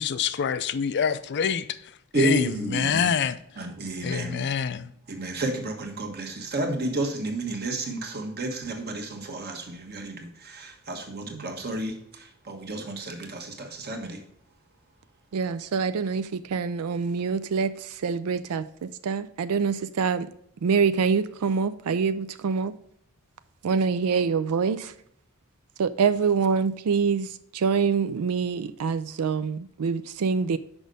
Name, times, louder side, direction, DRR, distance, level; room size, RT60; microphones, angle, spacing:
voice 1, 0.0-1.9 2.2-3.4 4.0-4.9, left 7 dB, 50° left, 0.4 m, -26 dB
voice 2, 2.1-3.1 3.6-4.5 5.1-14.2, right 2 dB, 45° right, 1.3 m, -31 dB
voice 3, 15.3-20.3 20.6-22.7 23.6-24.9 25.8-30.6, right 5 dB, 80° right, 0.4 m, -25 dB
6.2 x 5.1 x 5.2 m
head